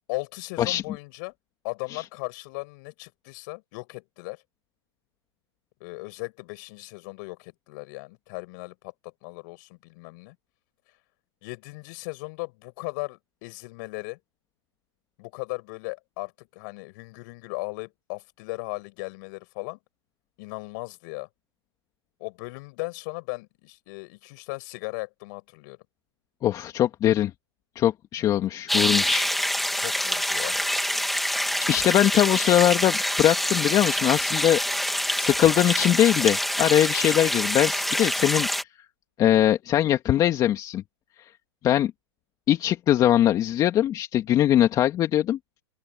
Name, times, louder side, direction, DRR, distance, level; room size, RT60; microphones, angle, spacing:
voice 1, 0.1-1.3 1.6-4.4 5.8-10.4 11.4-14.2 15.2-19.8 20.4-21.3 22.2-25.8 28.2-28.3 29.7-30.6, left 28 dB, 45° left, 7.2 m, -37 dB
voice 2, 26.4-27.3 27.8-29.3 31.7-38.5 39.2-40.8 41.6-41.9 42.5-45.4, left 12 dB, 25° left, 2.4 m, -22 dB
sound 1, 28.7-38.6, equal, ahead, 3.2 m, -26 dB
open air
hypercardioid pair, 140°, 15 cm